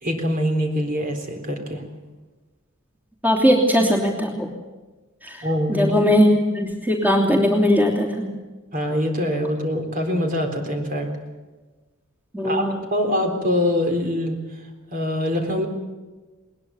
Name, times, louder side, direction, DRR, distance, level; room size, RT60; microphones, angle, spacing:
voice 1, 0.0-1.8 5.4-6.0 8.7-11.1 12.4-14.4 14.9-15.7, equal, 45° right, 4 dB, 3.9 m, -24 dB
voice 2, 3.2-4.5 5.2-5.4 5.7-8.3 12.3-12.8, equal, 10° right, 1 dB, 3.0 m, -19 dB
20.5 x 20.0 x 7.2 m, 1.2 s
head